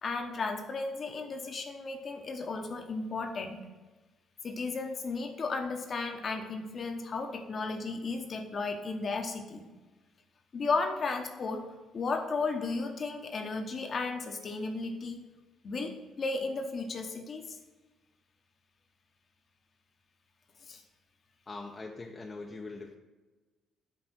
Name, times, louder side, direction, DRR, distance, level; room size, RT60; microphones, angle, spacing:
voice 1, 0.0-3.6 4.4-9.7 10.5-11.6 11.9-15.2 15.6-17.6 20.6-20.8, left 3 dB, 45° left, 4 dB, 1.0 m, -34 dB
voice 2, 21.5-23.0, left 3 dB, 30° left, 1 dB, 0.7 m, -42 dB
7.7 x 3.4 x 6.2 m, 1.2 s
hypercardioid pair, 50°, 0 cm